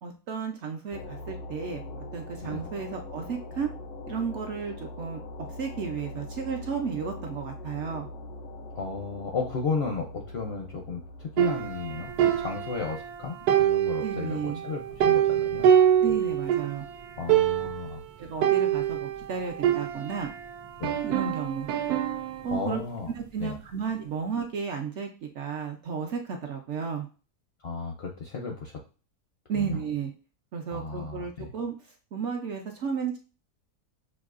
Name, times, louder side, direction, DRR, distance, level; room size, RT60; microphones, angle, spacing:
voice 1, 0.0-3.7 4.1-5.2 5.6-8.1 14.0-14.6 16.0-16.9 18.2-20.3 21.0-21.7 22.4-22.8 23.2-27.1 29.5-30.1 30.5-31.7 32.1-33.2, right 6 dB, 65° right, 3 dB, 0.8 m, -33 dB
sound 1, 0.9-12.9, left 2 dB, 90° left, 1.5 m, -42 dB
voice 2, 8.7-15.8 17.2-18.0 20.8-21.0 22.5-23.1 23.4-23.6 27.6-28.7 29.5-29.8 30.7-31.5, left 4 dB, 65° left, 1 dB, 0.6 m, -34 dB
sound 2, 11.4-13.1 13.5-16.8 17.0-17.1 17.3-17.9 18.4-20.4 20.8-22.5, right 10 dB, 85° right, 1.1 m, -25 dB
6.1 x 2.6 x 2.4 m, 0.35 s
omnidirectional pair, 1.6 m